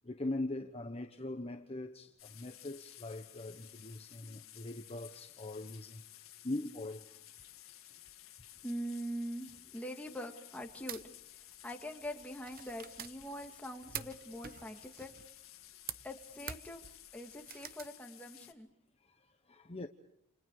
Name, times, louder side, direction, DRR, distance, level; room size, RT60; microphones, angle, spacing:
voice 1, 0.0-7.2 18.4-18.5 19.0-19.9, left 2 dB, 30° left, 1.1 m, -42 dB
sound 1, 2.2-18.5, left 13 dB, 70° left, 2.2 m, -55 dB
voice 2, 8.6-11.0 11.3-15.1 16.0-18.7, equal, 5° left, 2.3 m, -43 dB
sound 2, 10.6-17.9, right 9 dB, 45° right, 0.9 m, -48 dB
29.0 x 29.0 x 4.9 m
head